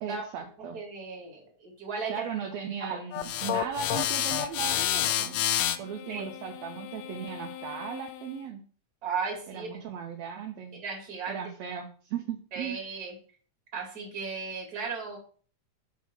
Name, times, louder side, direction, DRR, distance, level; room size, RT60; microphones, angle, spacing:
voice 1, 0.0-0.8 2.1-5.4 5.8-8.6 9.5-10.8 11.3-12.8, right 7 dB, 70° right, 3 dB, 1.8 m, -37 dB
voice 2, 0.7-2.3 2.8-3.0 6.1-6.3 9.0-9.8 10.7-11.4 12.5-13.1 13.7-15.2, right 5 dB, 30° right, 0 dB, 2.5 m, -35 dB
sound 1, 3.1-8.3, left 11 dB, 85° left, 1.4 m, -30 dB
7.2 x 4.2 x 6.0 m, 0.42 s
omnidirectional pair, 3.7 m